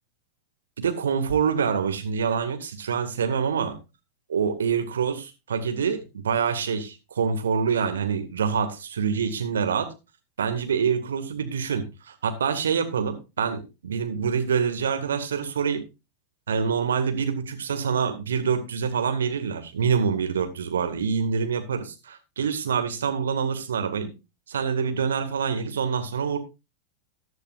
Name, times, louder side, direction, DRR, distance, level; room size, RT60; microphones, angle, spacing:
voice 1, 0.8-3.8 4.3-9.9 10.4-15.8 16.5-24.1 24.5-26.4, right 6 dB, 65° right, 7 dB, 2.0 m, -26 dB
14.5 x 10.5 x 2.6 m, 0.26 s
figure-of-eight pair, 90°, 0 cm